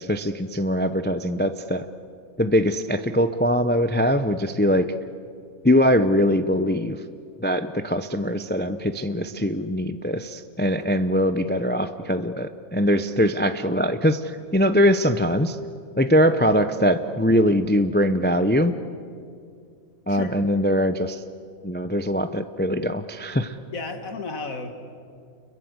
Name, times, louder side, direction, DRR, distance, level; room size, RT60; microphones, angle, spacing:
voice 1, 0.0-1.8 2.4-4.9 5.6-7.0 7.4-15.6 16.0-18.7 20.1-21.2 21.6-23.6, equal, 15° left, 10 dB, 0.3 m, -22 dB
voice 2, 23.7-24.7, left 3 dB, 65° left, 6 dB, 2.4 m, -33 dB
29.5 x 22.5 x 8.0 m, 2.4 s
omnidirectional pair, 1.5 m